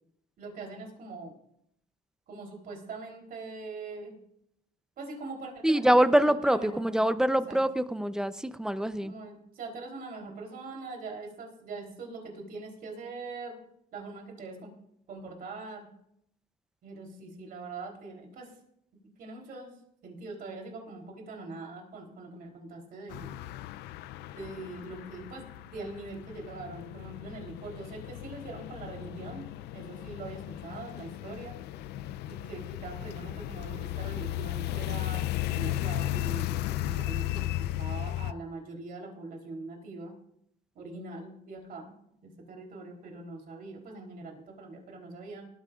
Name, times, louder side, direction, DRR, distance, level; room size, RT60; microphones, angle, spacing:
voice 1, 0.4-1.4 2.3-4.1 5.0-7.1 7.5-7.6 9.0-13.6 13.9-14.7 15.1-15.9 16.8-18.5 19.2-19.7 20.0-23.4 24.4-29.5 29.7-31.6 32.3-40.1 40.8-41.9 42.2-45.5, right 3 dB, 60° right, 1 dB, 3.6 m, -42 dB
voice 2, 5.6-9.1, right 1 dB, 5° right, 12 dB, 0.7 m, -25 dB
sound 1, 23.1-38.3, left 15 dB, 80° left, 0.5 m, -35 dB
18.5 x 13.5 x 2.5 m, 0.73 s
cardioid pair, 110°, 17 cm